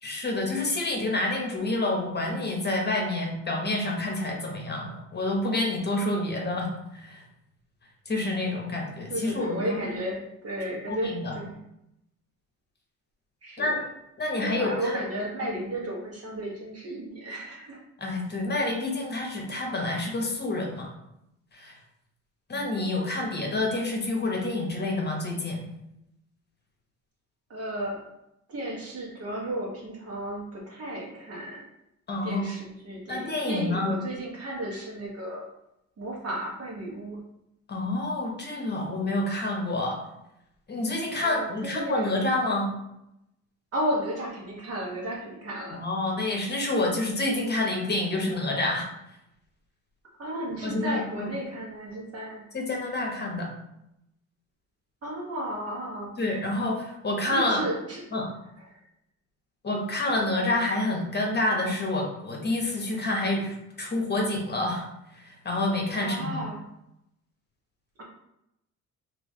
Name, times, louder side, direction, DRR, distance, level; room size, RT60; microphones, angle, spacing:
voice 1, 0.0-7.2 8.1-10.0 10.9-11.4 13.6-13.8 14.2-15.0 18.0-20.9 21.5-21.8 22.5-25.6 32.1-32.5 33.1-33.9 37.7-40.0 40.7-42.7 45.7-48.9 50.6-51.3 52.5-53.5 56.2-57.6 58.1-58.3 59.6-64.9 65.1-66.4, left 2 dB, 35° left, 0 dB, 1.0 m, -28 dB
voice 2, 9.1-11.6 13.4-13.7 14.4-17.8 22.5-22.7 27.5-28.0 28.5-31.7 32.2-35.4 36.0-37.2 41.2-42.2 43.7-45.8 50.2-52.5 55.0-56.2 57.3-58.1 58.5-58.8 66.0-66.6, right 1 dB, 55° right, -3 dB, 1.4 m, -33 dB
3.4 x 3.0 x 3.2 m, 0.83 s
cardioid pair, 90°, 30 cm